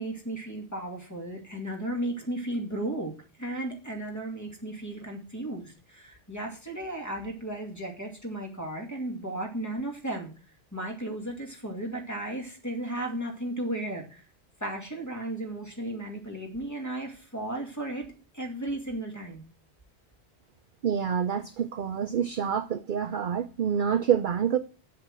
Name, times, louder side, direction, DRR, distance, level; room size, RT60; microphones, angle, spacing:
voice 1, 0.0-3.1 3.4-10.3 10.7-14.2 14.6-18.1 18.3-19.4, right 1 dB, 15° left, 2.3 m, -34 dB
voice 2, 20.8-24.6, right 8 dB, 55° right, 0.7 m, -27 dB
7.8 x 5.9 x 7.6 m
omnidirectional pair, 1.1 m